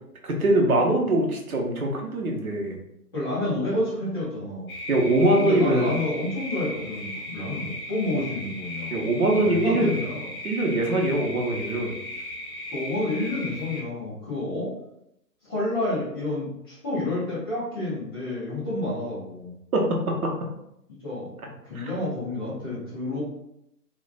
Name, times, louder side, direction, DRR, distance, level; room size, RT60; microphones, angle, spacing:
voice 1, 0.2-2.8 4.9-5.9 8.9-9.9 10.4-12.0 19.7-20.3 21.7-21.9, right 1 dB, 60° right, 0 dB, 0.8 m, -23 dB
voice 2, 3.1-4.7 5.4-9.0 9.3-10.3 12.7-14.7 15.4-19.5 20.9-21.3 21.6-23.2, left 2 dB, 15° left, -11 dB, 0.6 m, -29 dB
sound 1, 4.7-13.8, left 1 dB, 60° left, 1.0 m, -37 dB
3.1 x 2.3 x 2.3 m, 0.79 s
figure-of-eight pair, 130°, 49 cm